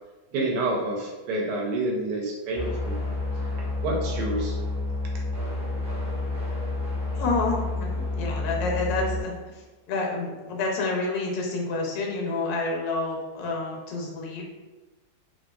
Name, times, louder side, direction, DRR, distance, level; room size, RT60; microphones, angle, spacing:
voice 1, 0.3-3.0 3.8-4.6, right 2 dB, 80° right, -1 dB, 1.2 m, -28 dB
sound 1, 2.6-9.2, left 2 dB, 55° right, 1.1 m, -29 dB
voice 2, 7.1-14.4, left 3 dB, 70° left, 0 dB, 1.1 m, -29 dB
3.0 x 2.6 x 2.2 m, 1.2 s
omnidirectional pair, 1.8 m